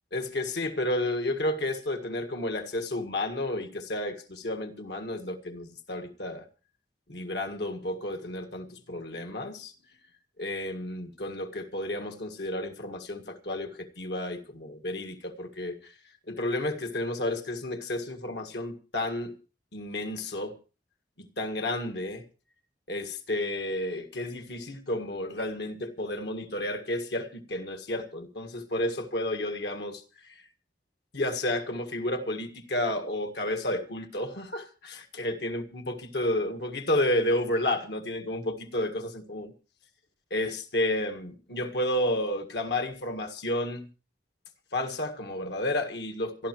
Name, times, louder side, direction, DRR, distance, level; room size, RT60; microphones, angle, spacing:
voice 1, 0.1-6.4 7.1-9.7 10.4-15.9 16.3-19.4 19.7-20.5 21.2-22.2 22.9-30.0 30.3-30.4 31.1-39.5 40.3-43.9 44.7-46.5, left 1 dB, 70° left, 1.7 m, -31 dB
27.0 x 12.0 x 3.0 m
head